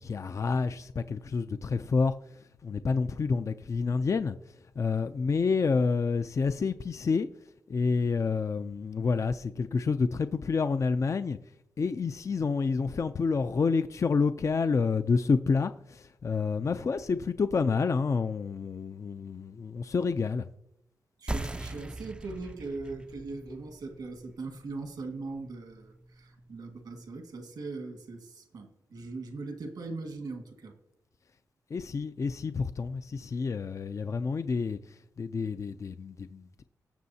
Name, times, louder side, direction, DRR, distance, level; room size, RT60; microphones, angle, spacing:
voice 1, 0.0-2.1 2.6-4.4 4.8-7.3 7.7-11.4 11.8-20.5 31.7-34.8 35.2-36.6, left 4 dB, 50° left, 0.5 m, -28 dB
voice 2, 21.2-30.7, right 3 dB, 80° right, 1.8 m, -40 dB
sound 1, 21.3-26.4, right 2 dB, 15° right, 0.4 m, -41 dB
19.5 x 6.9 x 2.8 m
cardioid pair, 65°, 7 cm